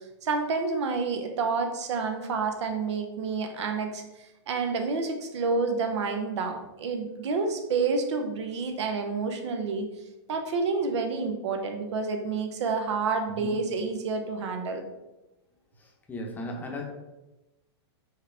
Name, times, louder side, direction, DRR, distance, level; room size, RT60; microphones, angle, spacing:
voice 1, 0.2-9.9 10.3-14.8, right 4 dB, 75° right, 5 dB, 0.8 m, -29 dB
voice 2, 15.8-16.9, left 1 dB, 10° left, 1 dB, 0.7 m, -36 dB
4.7 x 3.0 x 3.3 m, 1.0 s
hypercardioid pair, 135°, 15 cm